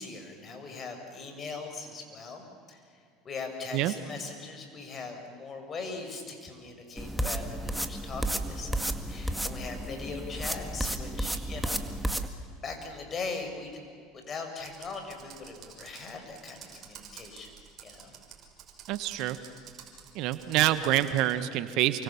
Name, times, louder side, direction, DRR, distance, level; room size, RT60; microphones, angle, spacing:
voice 1, 0.0-2.8 3.2-11.8 12.6-13.8 14.3-17.5 17.8-18.1, left 4 dB, 35° left, 4 dB, 6.6 m, -40 dB
sound 1, 7.0-12.3, right 1 dB, ahead, 2.0 m, -32 dB
Computer keyboard, 14.6-21.4, right 8 dB, 45° right, 5.9 m, -50 dB
voice 2, 18.9-19.4 20.1-22.0, right 14 dB, 60° right, 12 dB, 1.5 m, -26 dB
29.0 x 24.5 x 7.4 m, 2.4 s
hypercardioid pair, 85°, 0 cm